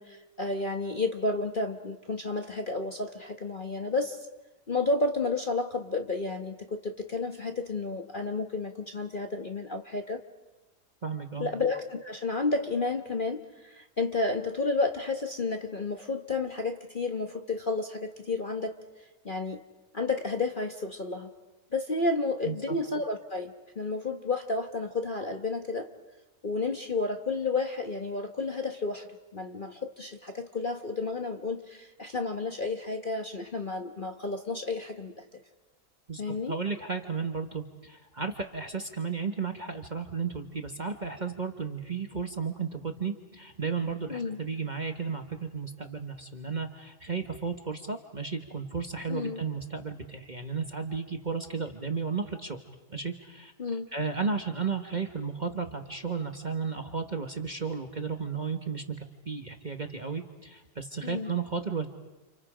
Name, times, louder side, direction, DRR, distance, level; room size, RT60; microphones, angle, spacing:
voice 1, 0.0-4.3 4.7-10.2 11.4-18.7 19.2-19.6 19.9-21.3 21.7-25.9 26.4-29.1 29.3-35.4 36.2-36.5 44.1-44.4 49.1-49.4 53.6-53.9 61.0-61.3, left 3 dB, 35° left, 5 dB, 1.2 m, -31 dB
voice 2, 11.0-11.5 22.4-22.8 36.1-36.2 36.5-52.6 52.9-53.5 53.9-61.9, right 5 dB, 30° right, 5 dB, 1.3 m, -34 dB
29.5 x 29.0 x 5.0 m, 1.1 s
omnidirectional pair, 1.9 m